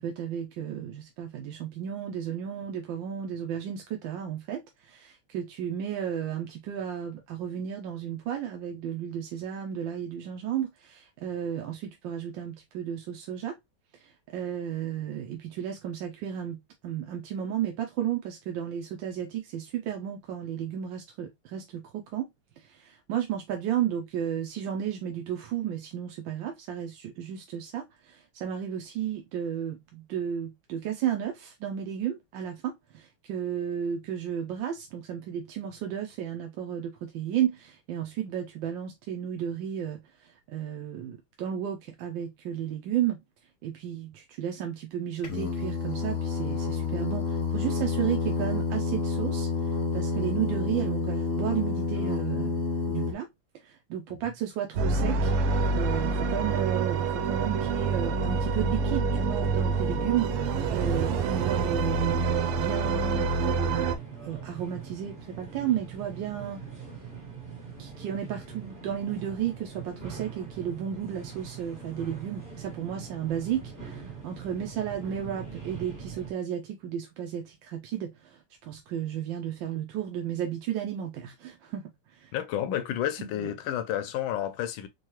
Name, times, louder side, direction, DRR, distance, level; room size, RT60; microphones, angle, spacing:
voice 1, 0.0-13.5 14.3-16.6 16.8-22.3 22.7-43.2 43.6-49.5 49.9-52.6 52.9-53.3 53.6-55.3 55.7-62.2 62.6-63.9 64.2-66.6 67.8-81.8 82.2-82.3 83.2-83.5, right 9 dB, 70° right, 1.2 m, -33 dB
Singing, 45.2-53.1, left 4 dB, 55° left, 0.9 m, -29 dB
sound 1, 54.8-64.0, right 4 dB, 90° right, 1.5 m, -27 dB
sound 2, 57.3-76.3, right 6 dB, 25° right, 1.4 m, -43 dB
voice 2, 82.3-84.9, left 11 dB, 75° left, 1.3 m, -30 dB
4.6 x 2.3 x 2.9 m
omnidirectional pair, 2.4 m